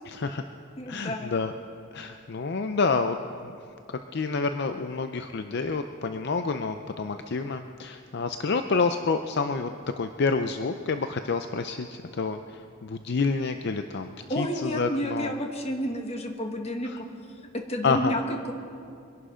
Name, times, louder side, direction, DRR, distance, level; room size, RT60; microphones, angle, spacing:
voice 1, 0.1-0.4 0.9-1.5 1.9-3.2 3.4-3.5 4.1-15.4 16.8-17.0 17.8-18.1, left 4 dB, 55° left, 8 dB, 0.5 m, -28 dB
voice 2, 0.8-1.3 14.3-17.1 17.5-18.5, equal, 30° left, 4 dB, 1.4 m, -31 dB
23.5 x 11.5 x 5.0 m, 2.5 s
head